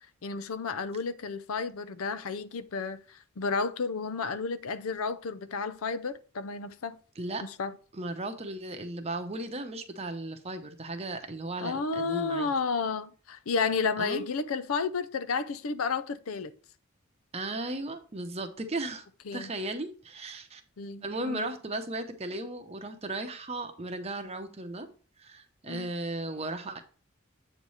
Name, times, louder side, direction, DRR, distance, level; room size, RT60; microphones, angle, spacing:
voice 1, 0.2-7.0 7.4-7.7 11.6-16.5 19.3-19.5 20.8-21.5 25.7-25.9, left 4 dB, 80° left, 0.5 m, -32 dB
voice 2, 7.9-12.5 14.0-14.3 17.3-19.0 19.3-20.6 21.0-24.9 25.2-26.8, right 2 dB, 30° right, 0.8 m, -36 dB
8.1 x 3.2 x 5.5 m
head